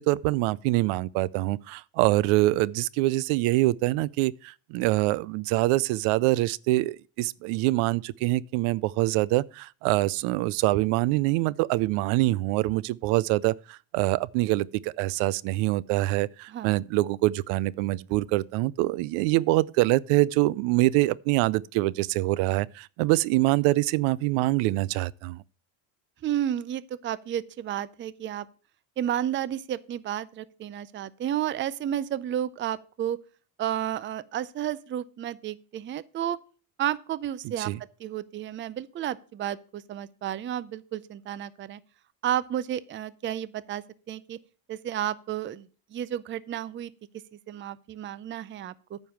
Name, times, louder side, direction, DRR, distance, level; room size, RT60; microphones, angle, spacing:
voice 1, 0.0-25.4 37.6-37.8, right 18 dB, 80° right, 0.6 m, -25 dB
voice 2, 26.2-28.5 29.0-33.2 33.6-36.4 36.8-37.7 38.0-41.8 42.2-44.4 44.7-46.9 47.5-49.0, right 11 dB, 25° right, 0.4 m, -32 dB
9.4 x 5.4 x 7.5 m
cardioid pair, 135°, 48 cm